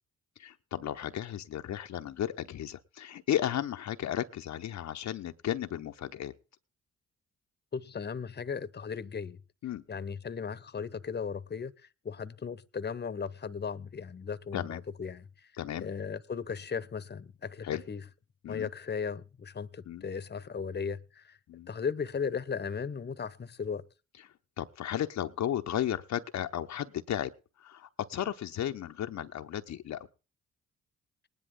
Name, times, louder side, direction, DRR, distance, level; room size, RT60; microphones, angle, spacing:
voice 1, 0.4-6.3 9.6-9.8 14.5-14.8 15.5-15.9 17.6-17.8 18.4-18.7 19.9-20.0 21.5-21.7 24.2-27.3 27.6-30.1, left 11 dB, 60° left, 0.8 m, -34 dB
voice 2, 7.7-9.4 9.9-11.7 12.0-15.2 15.8-18.0 18.5-21.4 21.7-23.8, left 6 dB, 35° left, 1.0 m, -36 dB
19.5 x 10.5 x 3.7 m
supercardioid pair, 50°, 31 cm